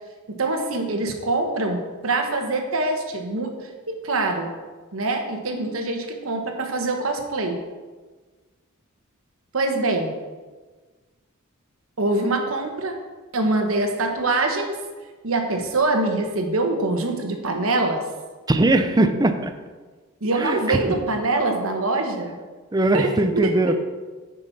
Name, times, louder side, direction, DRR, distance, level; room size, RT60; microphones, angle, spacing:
voice 1, 0.3-4.5 4.9-7.6 9.5-10.2 12.0-13.0 13.3-14.8 15.2-18.0 20.2-22.4 22.9-23.5, right 2 dB, 75° right, 4 dB, 1.1 m, -24 dB
voice 2, 18.5-19.5 20.4-20.8 22.7-23.8, right 2 dB, 20° right, 9 dB, 0.5 m, -20 dB
10.0 x 5.3 x 4.1 m, 1.4 s
head